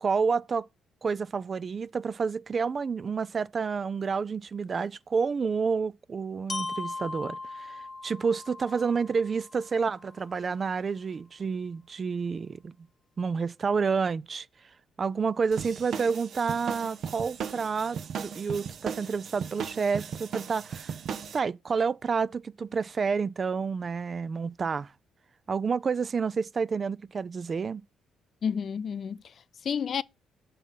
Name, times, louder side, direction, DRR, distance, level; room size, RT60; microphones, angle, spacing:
voice 1, 0.0-0.7 1.0-12.7 13.2-14.5 15.0-20.9 21.3-24.9 25.5-27.8, right 5 dB, 40° right, 0.3 m, -29 dB
Glockenspiel, 6.5-10.5, left 3 dB, 35° left, 0.9 m, -39 dB
sound 1, 15.5-21.4, right 7 dB, 65° right, 0.7 m, -37 dB
voice 2, 28.4-30.0, left 7 dB, 55° left, 0.3 m, -31 dB
7.2 x 4.0 x 5.4 m
cardioid pair, 90°, 0 cm